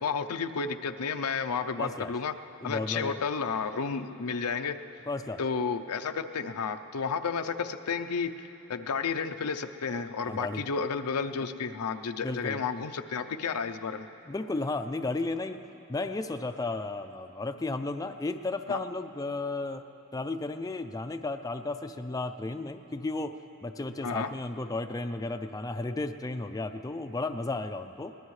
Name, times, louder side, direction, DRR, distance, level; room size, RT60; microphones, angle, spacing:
voice 1, 0.0-2.3 2.6-4.8 5.4-14.1 18.7-18.8 24.0-24.3, left 5 dB, 85° left, 8 dB, 0.6 m, -32 dB
voice 2, 1.8-2.1 2.6-3.2 5.1-5.4 10.2-10.6 12.2-12.6 14.2-15.6 15.9-28.1, left 2 dB, 15° left, 7 dB, 0.4 m, -34 dB
23.0 x 18.5 x 3.2 m, 2.9 s
head